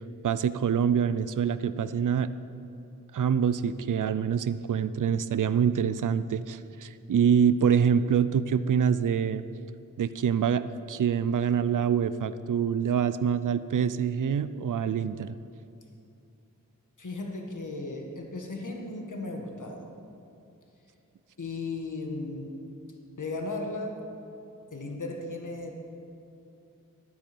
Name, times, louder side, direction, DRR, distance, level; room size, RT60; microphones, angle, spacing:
voice 1, 0.2-2.3 3.1-9.5 10.0-15.4, right 7 dB, 70° right, 14 dB, 0.5 m, -25 dB
voice 2, 17.0-19.9 21.4-22.5 23.2-24.0 24.7-25.8, left 2 dB, 65° left, 1 dB, 1.8 m, -36 dB
12.0 x 9.6 x 6.9 m, 2.7 s
cardioid pair, 45°, 32 cm